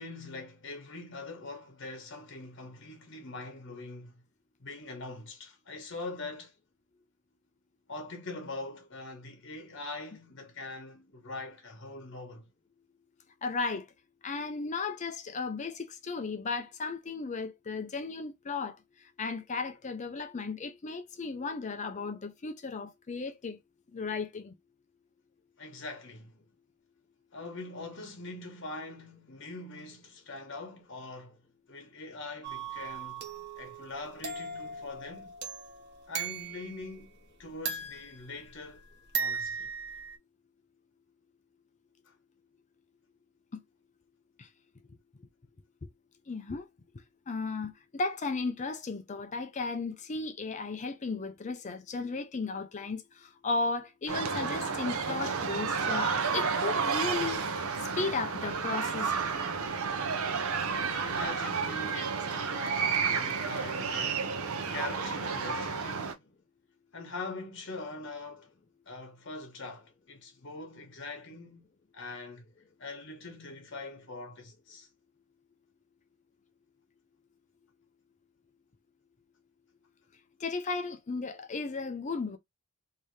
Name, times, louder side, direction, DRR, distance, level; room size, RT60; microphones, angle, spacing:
voice 1, 0.0-4.2 4.6-6.5 7.9-12.5 25.6-26.3 27.3-31.4 31.7-33.3 33.6-35.3 36.1-37.1 37.4-38.8 39.2-39.7 60.5-64.2 64.7-66.3 66.9-68.5 68.9-71.7 71.9-72.5 72.8-74.9, left 3 dB, 60° left, 1.3 m, -43 dB
voice 2, 13.4-13.9 14.2-18.8 19.2-23.6 23.9-24.5 44.4-44.5 46.3-46.7 47.3-57.4 58.0-59.1 80.4-82.4, left 4 dB, 35° left, 0.5 m, -35 dB
sound 1, 32.4-36.9 37.7-38.8 39.1-40.1, right 5 dB, 50° right, 1.0 m, -38 dB
sound 2, 54.1-66.1, right 5 dB, 90° right, 0.7 m, -31 dB
3.5 x 2.8 x 3.2 m
head